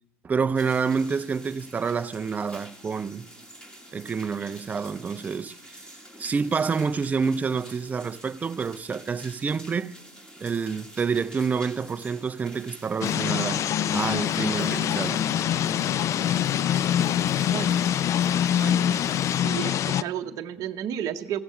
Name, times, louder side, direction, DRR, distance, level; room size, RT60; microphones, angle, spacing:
voice 1, 0.2-3.3 3.9-5.8 6.2-10.0 10.4-13.6 13.9-15.3, right 5 dB, 20° right, 0.4 m, -28 dB
sound 1, 0.5-19.4, right 1 dB, 10° left, 2.4 m, -48 dB
sound 2, 13.0-20.0, left 10 dB, 45° left, 0.4 m, -24 dB
voice 2, 17.5-17.8 18.5-19.0 19.4-21.4, right 9 dB, 50° right, 0.7 m, -33 dB
15.5 x 7.0 x 9.4 m
hypercardioid pair, 90°, 7 cm